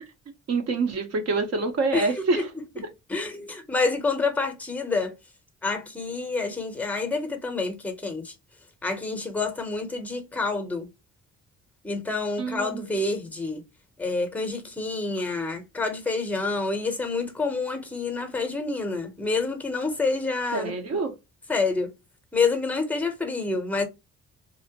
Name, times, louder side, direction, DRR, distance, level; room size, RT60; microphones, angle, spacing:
voice 1, 0.5-2.4 12.4-12.9 20.5-21.1, right 3 dB, 55° right, 0.8 m, -26 dB
voice 2, 1.9-2.5 2.8-5.1 5.6-8.3 8.8-10.9 11.8-13.6 14.0-20.7 21.5-21.9 22.3-23.9, left 3 dB, 5° left, 0.7 m, -28 dB
2.8 x 2.0 x 2.8 m
cardioid pair, 90°, 30 cm